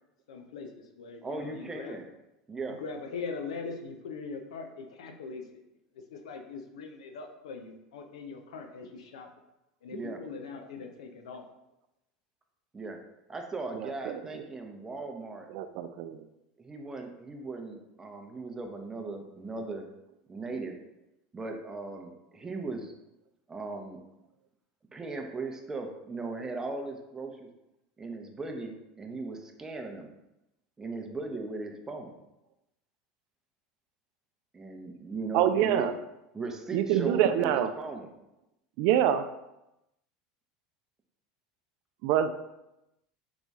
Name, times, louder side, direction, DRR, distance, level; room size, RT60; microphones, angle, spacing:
voice 1, 0.3-2.0 2.7-5.4 6.1-9.3 9.8-11.5, left 4 dB, 90° left, 4 dB, 0.6 m, -41 dB
voice 2, 1.2-2.1 2.5-2.8 9.9-10.2 12.7-13.0 13.3-15.5 16.6-19.9 20.3-20.7 21.3-22.9 23.5-24.0 24.9-27.5 28.0-30.1 30.8-32.2 34.5-35.9 36.3-38.1, right 3 dB, 15° right, 3 dB, 0.7 m, -38 dB
voice 3, 13.8-14.2 15.5-16.2 35.3-35.9 36.7-37.7 38.8-39.2 42.0-42.3, right 10 dB, 60° right, 10 dB, 0.3 m, -25 dB
4.0 x 3.0 x 3.5 m, 0.91 s
supercardioid pair, 110°, 3 cm